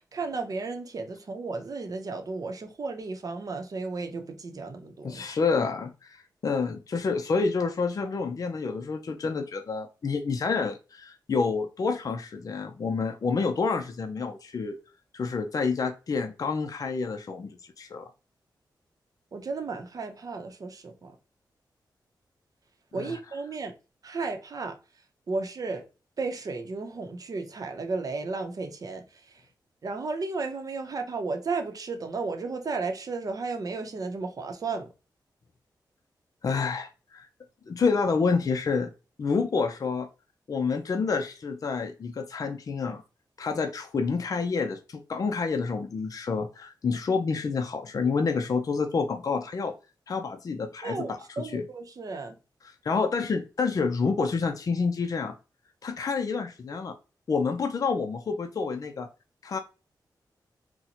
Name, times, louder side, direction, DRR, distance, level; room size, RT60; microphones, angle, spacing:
voice 1, 0.1-5.2 19.3-21.1 22.9-23.7 24.0-24.7 25.3-25.8 26.2-29.0 29.8-34.9 50.8-52.3, right 3 dB, 50° right, 0.7 m, -33 dB
voice 2, 5.0-14.8 15.1-18.1 22.9-23.3 36.4-37.3 37.7-38.9 39.2-40.1 40.5-43.0 43.4-49.7 50.1-51.7 52.6-55.3 55.8-57.0 57.3-59.1 59.4-59.6, left 4 dB, 50° left, 0.5 m, -28 dB
3.9 x 2.1 x 2.8 m
wide cardioid pair, 105°, 8 cm